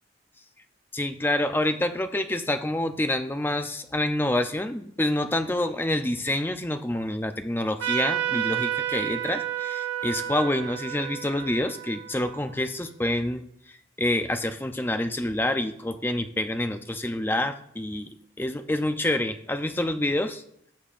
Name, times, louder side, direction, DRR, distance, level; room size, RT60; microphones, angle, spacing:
voice 1, 0.9-18.1 18.4-20.4, left 1 dB, 10° left, 8 dB, 0.5 m, -27 dB
Trumpet, 7.8-12.9, right 11 dB, 90° right, 1.5 m, -31 dB
16.0 x 6.7 x 2.5 m, 0.72 s
head